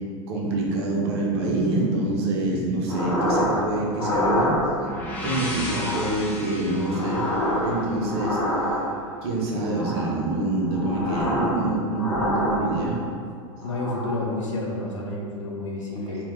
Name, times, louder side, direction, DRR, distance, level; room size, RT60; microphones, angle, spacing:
voice 1, 0.3-4.6 5.2-7.2 7.6-8.4 9.2-12.9 16.1-16.2, right 2 dB, 50° right, -2 dB, 0.5 m, -26 dB
sound 1, 2.9-3.6 3.9-5.0 5.6-6.2 6.7-9.1 9.6-10.2 10.6-11.6 11.9-13.1 13.6-14.2, equal, 30° left, 0.7 m, -27 dB
sound 2, 4.5-8.4, left 1 dB, 10° left, 0.4 m, -35 dB
voice 2, 13.6-16.2, left 2 dB, 70° left, -2 dB, 0.5 m, -30 dB
2.1 x 2.0 x 3.0 m, 2.2 s
figure-of-eight pair, 85°, 17 cm